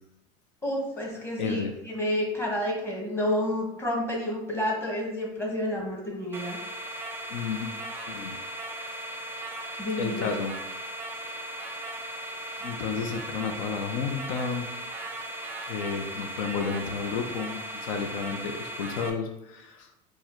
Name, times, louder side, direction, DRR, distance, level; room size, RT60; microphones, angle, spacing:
voice 1, 0.6-6.6 9.8-10.4, left 1 dB, 15° left, -1 dB, 1.1 m, -30 dB
voice 2, 1.4-1.7 7.3-7.7 8.1-8.3 10.0-10.6 12.6-14.7 15.7-19.9, left 5 dB, 85° left, 5 dB, 0.6 m, -32 dB
sound 1, 6.3-19.1, right 1 dB, 10° right, 0.6 m, -37 dB
4.6 x 2.2 x 4.3 m, 0.87 s
cardioid pair, 145°, 17 cm